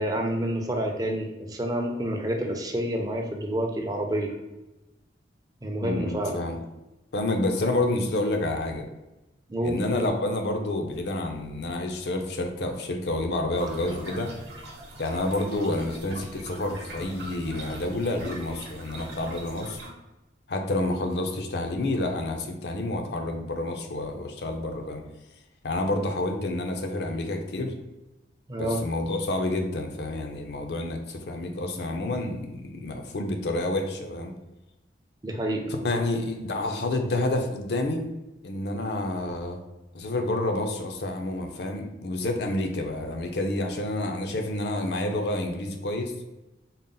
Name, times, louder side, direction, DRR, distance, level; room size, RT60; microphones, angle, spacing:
voice 1, 0.0-4.3 5.6-6.4 9.5-9.8 28.5-28.8 35.2-35.7, right 1 dB, 20° right, 2 dB, 0.4 m, -28 dB
voice 2, 5.8-6.6 7.1-8.9 9.6-14.3 15.0-19.8 20.5-25.0 25.6-27.7 28.6-34.3 35.7-38.1 38.4-39.6 39.9-46.1, left 2 dB, 60° left, 4 dB, 0.5 m, -29 dB
sound 1, 13.6-19.9, right 1 dB, 65° right, 0.8 m, -41 dB
3.9 x 2.0 x 3.7 m, 1.0 s
head